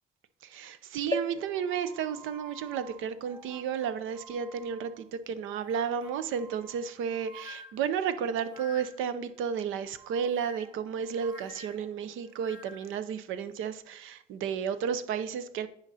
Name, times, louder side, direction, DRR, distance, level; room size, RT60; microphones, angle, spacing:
voice 1, 0.4-15.7, right 7 dB, 85° right, 0.7 m, -32 dB
sound 1, 1.1-4.8 5.4-5.5 5.7-5.8, left 2 dB, 20° left, 0.5 m, -41 dB
sound 2, 1.7-5.0 5.4-9.2 10.0-13.0, right 1 dB, 20° right, 2.1 m, -51 dB
9.7 x 5.4 x 4.1 m
cardioid pair, 90°, 20 cm